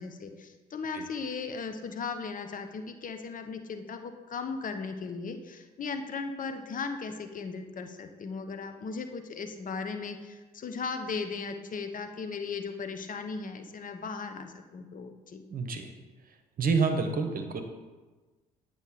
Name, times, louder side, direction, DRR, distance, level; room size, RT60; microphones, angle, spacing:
voice 1, 0.0-15.4, left 4 dB, 40° left, 7 dB, 0.9 m, -37 dB
voice 2, 15.5-15.9 16.6-17.6, right 4 dB, 45° right, 6 dB, 1.1 m, -28 dB
9.2 x 5.4 x 5.1 m, 1.3 s
figure-of-eight pair, 50°, 21 cm